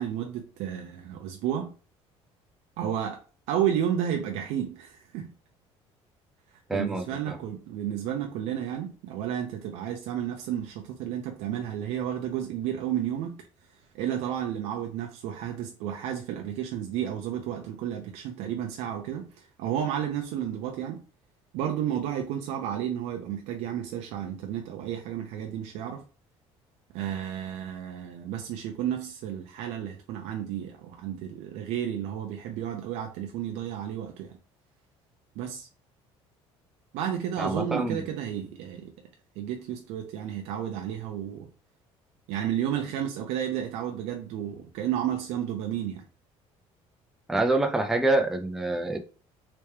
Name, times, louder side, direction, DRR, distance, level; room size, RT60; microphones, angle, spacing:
voice 1, 0.0-1.7 2.8-3.2 3.5-5.3 6.7-13.4 13.9-21.0 21.5-26.0 26.9-34.4 35.4-35.7 36.9-38.9 39.4-41.5 42.3-46.0, right 10 dB, 90° right, 0.6 m, -32 dB
voice 2, 6.7-7.4 37.4-38.0 47.3-49.0, right 2 dB, 5° right, 0.3 m, -26 dB
3.3 x 3.0 x 3.2 m
cardioid pair, 175°, 11 cm